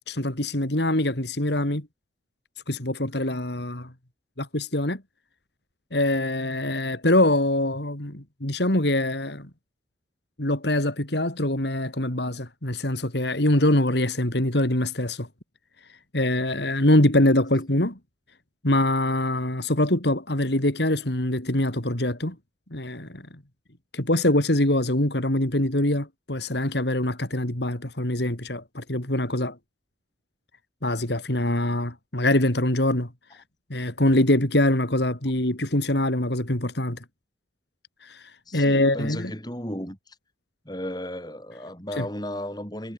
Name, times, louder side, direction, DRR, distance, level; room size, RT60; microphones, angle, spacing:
voice 1, 0.1-1.9 2.7-3.9 4.4-5.0 5.9-9.5 10.4-15.3 16.1-18.0 18.6-22.4 22.7-23.2 23.9-29.6 30.8-33.4 33.7-37.0 38.0-39.3 42.0-42.1, left 1 dB, 65° left, 3.4 m, -24 dB
voice 2, 38.5-40.2 40.6-42.9, left 1 dB, 20° left, 7.9 m, -34 dB
head